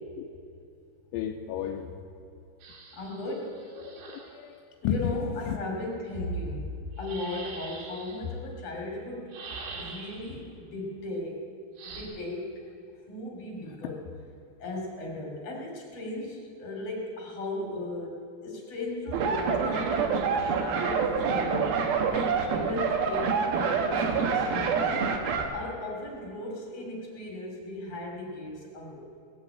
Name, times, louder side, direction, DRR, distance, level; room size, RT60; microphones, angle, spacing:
voice 1, 1.1-1.9 3.7-5.2 5.5-5.6, left 9 dB, 80° left, 2 dB, 3.0 m, -33 dB
sound 1, 2.6-4.4 6.9-8.2 9.3-10.4 11.8-12.0, right 4 dB, 85° right, 5.1 m, -43 dB
voice 2, 2.9-3.6 4.8-6.7 7.0-9.3 9.7-11.4 11.9-12.6 13.1-14.0 14.6-21.7 22.1-25.0 25.5-29.1, left 2 dB, 40° left, -1 dB, 3.2 m, -36 dB
sound 2, 19.1-25.5, right 5 dB, 70° right, 2.5 m, -27 dB
18.0 x 8.3 x 8.5 m, 2.6 s
omnidirectional pair, 5.7 m